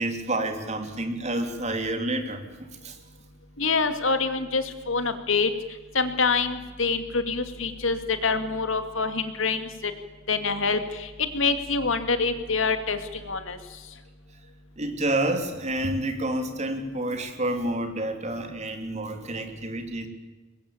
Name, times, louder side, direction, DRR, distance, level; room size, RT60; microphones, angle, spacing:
voice 1, 0.0-2.4 2.8-3.0 14.8-20.1, right 1 dB, 35° right, 6 dB, 3.2 m, -29 dB
voice 2, 3.6-5.5 5.9-9.9 10.3-13.6, left 4 dB, 70° left, 9 dB, 2.5 m, -26 dB
24.5 x 21.5 x 8.7 m, 1.2 s
head